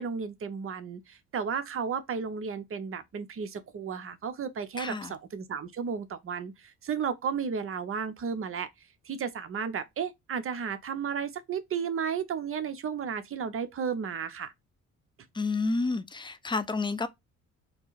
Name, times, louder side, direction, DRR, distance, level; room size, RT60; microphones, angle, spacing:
voice 1, 0.0-8.7 9.0-14.5, right 6 dB, 45° right, 0.8 m, -33 dB
voice 2, 4.8-5.1 15.3-17.1, left 3 dB, 15° left, 0.5 m, -30 dB
4.5 x 2.0 x 4.0 m
cardioid pair, 90°, 30 cm